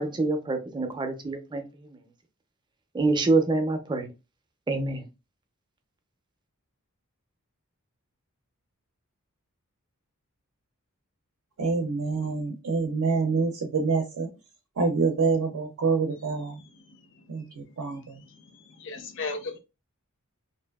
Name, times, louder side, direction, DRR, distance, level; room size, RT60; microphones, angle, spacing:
voice 1, 0.0-1.6 2.9-4.1 4.7-5.0, right 3 dB, 20° right, 0.4 m, -26 dB
voice 2, 11.6-14.3 14.8-16.6 17.3-18.2, right 4 dB, 75° right, 0.5 m, -26 dB
voice 3, 18.8-19.6, left 3 dB, 60° left, 0.5 m, -34 dB
2.6 x 2.3 x 2.2 m
head